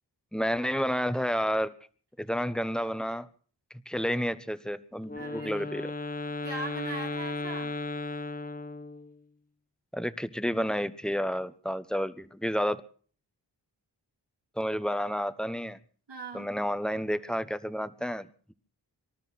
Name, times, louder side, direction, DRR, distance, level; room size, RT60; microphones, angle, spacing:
voice 1, 0.3-1.7 2.2-3.3 3.9-5.9 9.9-12.8 14.6-15.8 16.3-18.5, equal, ahead, 1.1 m, -30 dB
Wind instrument woodwind instrument, 5.0-9.2, left 2 dB, 20° left, 0.9 m, -35 dB
voice 2, 5.2-5.6 6.4-7.7 16.1-16.5, right 3 dB, 80° right, 4.3 m, -40 dB
25.5 x 13.0 x 4.2 m
wide cardioid pair, 70°, 42 cm